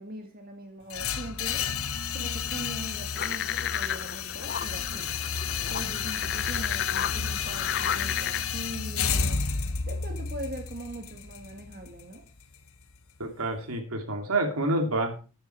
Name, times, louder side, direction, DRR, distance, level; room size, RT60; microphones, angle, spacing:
voice 1, 0.0-1.7 2.1-5.1 5.7-9.4 9.9-12.2, right 1 dB, 45° right, 4 dB, 1.9 m, -41 dB
sound 1, 0.9-12.9, left 6 dB, 80° left, 1.1 m, -31 dB
sound 2, 3.2-8.4, left 9 dB, 50° left, 0.6 m, -33 dB
voice 2, 13.2-15.3, right 2 dB, 85° right, 5 dB, 3.0 m, -28 dB
13.5 x 9.6 x 4.6 m, 0.35 s
head